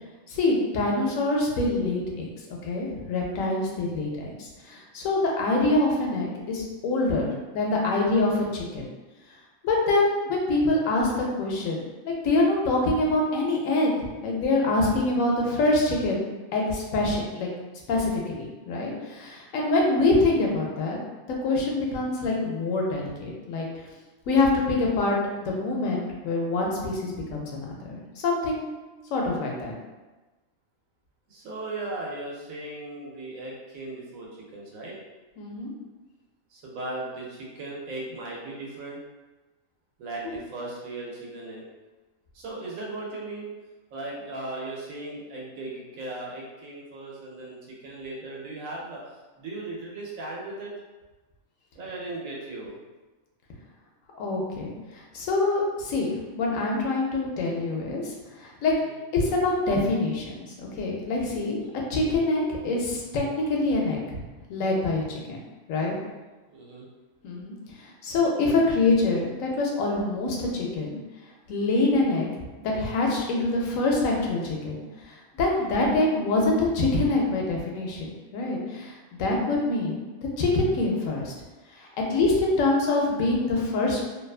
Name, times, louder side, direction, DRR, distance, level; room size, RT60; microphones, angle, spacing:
voice 1, 0.3-8.8 9.6-11.8 12.0-13.9 14.2-17.5 17.9-21.0 21.4-23.7 24.3-25.2 25.4-28.6 29.1-29.7 35.4-35.7 40.2-40.3 54.1-54.7 55.1-58.7 59.1-61.6 61.9-64.2 64.5-65.4 65.7-65.9 67.2-71.0 71.5-72.3 72.6-74.8 75.1-78.9 79.2-80.0 80.4-81.3 81.8-84.0, left 2 dB, 80° left, -2 dB, 1.0 m, -25 dB
voice 2, 31.3-34.9 36.5-39.0 40.0-41.6 42.3-43.5 43.9-49.0 49.4-50.7 51.8-52.8 58.8-59.0 61.6-61.8 66.5-66.9 75.5-75.7, right 2 dB, 85° right, -3 dB, 1.1 m, -37 dB
2.7 x 2.2 x 2.3 m, 1.2 s
omnidirectional pair, 1.4 m